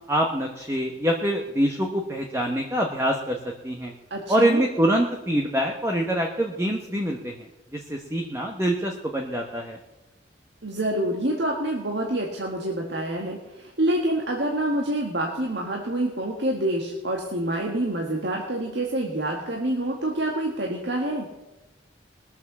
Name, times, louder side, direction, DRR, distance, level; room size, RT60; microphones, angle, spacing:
voice 1, 0.1-3.4 3.6-3.9 4.3-7.5 7.7-9.8, right 1 dB, 15° right, 2 dB, 1.0 m, -25 dB
voice 2, 4.1-4.6 10.6-21.3, right 1 dB, 60° right, -1 dB, 1.9 m, -27 dB
21.0 x 7.2 x 7.0 m, 1.0 s
head